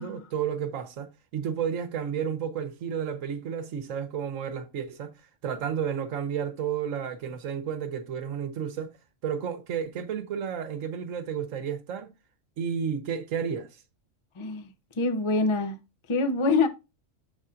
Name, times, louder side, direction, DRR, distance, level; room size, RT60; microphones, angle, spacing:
voice 1, 0.0-5.1 5.4-9.0 9.2-12.1 12.6-13.8, right 7 dB, 80° right, 1.2 m, -32 dB
voice 2, 14.4-14.7 15.0-15.8 16.1-16.7, left 3 dB, 40° left, 0.4 m, -25 dB
6.9 x 2.5 x 5.5 m
omnidirectional pair, 1.3 m